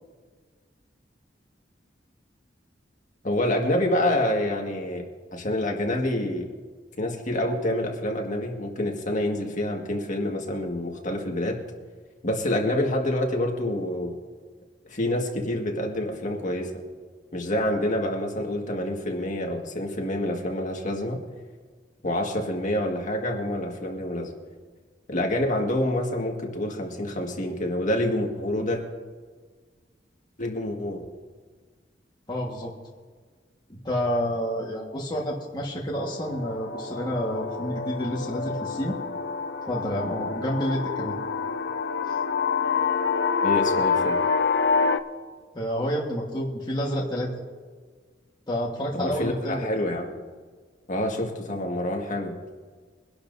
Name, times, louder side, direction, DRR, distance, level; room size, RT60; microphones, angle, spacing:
voice 1, 3.2-5.0 5.3-6.5 7.0-11.6 12.2-14.2 14.8-16.7 17.3-21.2 22.0-24.3 25.1-28.8 30.4-31.1 43.4-44.2 48.9-50.2 50.9-52.4, left 1 dB, 45° left, 1 dB, 1.8 m, -27 dB
voice 2, 32.3-32.7 33.7-39.0 39.7-41.1 42.1-42.2 45.5-47.3 48.5-49.7, equal, 25° left, -3 dB, 1.5 m, -29 dB
sound 1, 36.0-45.0, left 5 dB, 65° left, 0.6 m, -27 dB
23.0 x 11.5 x 2.7 m, 1.5 s
head